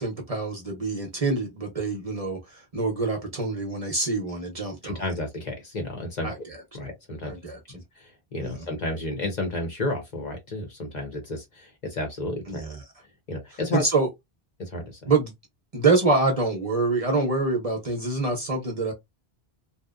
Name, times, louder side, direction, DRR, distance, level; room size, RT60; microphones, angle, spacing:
voice 1, 0.0-5.0 6.2-6.3 7.2-7.8 8.4-8.7 12.5-12.8 13.7-14.1 15.1-15.3 15.7-18.9, right 3 dB, 40° right, 0.7 m, -26 dB
voice 2, 4.8-6.4 6.7-7.3 7.7-12.6 13.3-13.8 14.6-15.0, left 2 dB, 45° left, 0.9 m, -32 dB
2.8 x 2.0 x 2.3 m
omnidirectional pair, 1.1 m